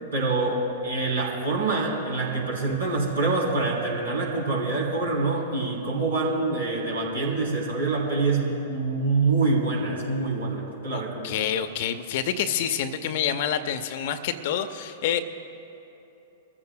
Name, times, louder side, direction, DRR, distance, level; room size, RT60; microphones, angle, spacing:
voice 1, 0.1-11.4, right 3 dB, 75° right, -3 dB, 3.5 m, -26 dB
voice 2, 10.9-15.2, left 9 dB, 50° left, 10 dB, 0.7 m, -27 dB
24.0 x 14.5 x 2.2 m, 2.9 s
figure-of-eight pair, 100°, 0 cm